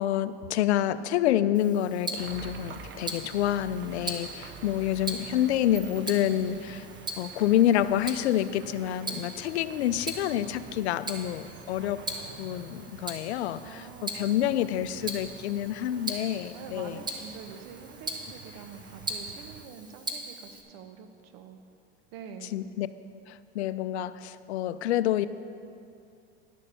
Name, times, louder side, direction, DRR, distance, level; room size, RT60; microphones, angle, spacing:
voice 1, 0.0-6.9 7.2-12.1 12.4-17.0 22.5-22.9 23.3-25.3, left 12 dB, 85° left, 14 dB, 0.5 m, -28 dB
Tick-tock, 1.5-20.6, right 2 dB, 15° right, 1.2 m, -40 dB
sound 1, 2.2-19.7, right 5 dB, 35° right, 0.8 m, -47 dB
voice 2, 5.3-5.9 13.5-14.7 15.0-15.1 15.9-16.1 16.5-21.6 22.1-22.6, right 6 dB, 55° right, 8 dB, 1.1 m, -46 dB
11.0 x 6.6 x 6.9 m, 2.5 s
hypercardioid pair, 105°, 32 cm